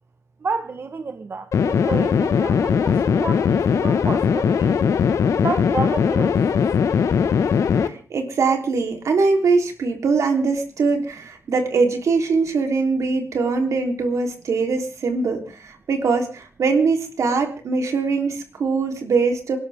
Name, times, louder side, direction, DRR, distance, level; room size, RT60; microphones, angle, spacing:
voice 1, 0.4-4.8 5.4-6.6, right 4 dB, 50° right, 8 dB, 1.3 m, -30 dB
sound 1, 1.5-7.9, left 6 dB, 90° left, 1.4 m, -19 dB
voice 2, 7.8-19.6, right 4 dB, 80° right, 4 dB, 3.5 m, -22 dB
27.5 x 12.0 x 3.6 m, 0.37 s
wide cardioid pair, 110°, 5 cm